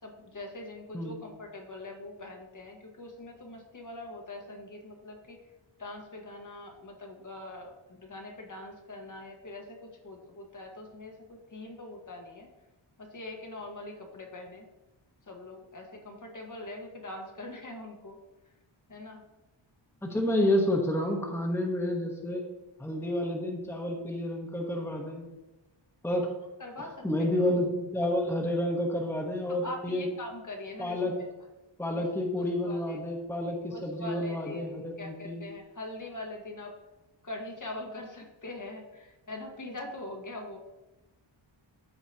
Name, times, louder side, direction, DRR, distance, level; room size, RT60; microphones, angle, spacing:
voice 1, 0.0-5.4 5.8-12.5 13.0-14.7 15.2-18.2 18.9-19.2 26.6-27.4 29.5-31.3 31.9-32.1 32.3-33.0 33.7-36.7 37.2-40.6, left 2 dB, 40° left, 2 dB, 1.5 m, -43 dB
voice 2, 20.0-22.4 22.8-25.3 26.0-26.3 27.0-30.0 30.8-31.1 31.8-35.4, left 1 dB, 5° left, 0 dB, 1.2 m, -30 dB
14.0 x 4.9 x 2.9 m, 1.0 s
wide cardioid pair, 120°, 48 cm